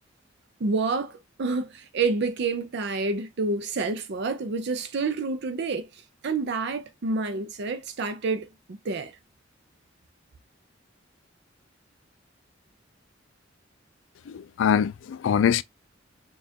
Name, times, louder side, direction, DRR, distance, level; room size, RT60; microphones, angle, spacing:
voice 1, 0.6-5.9 6.2-9.1, right 3 dB, 60° right, 0.5 m, -28 dB
voice 2, 14.3-15.6, left 8 dB, 70° left, 0.3 m, -23 dB
4.3 x 2.4 x 2.7 m
head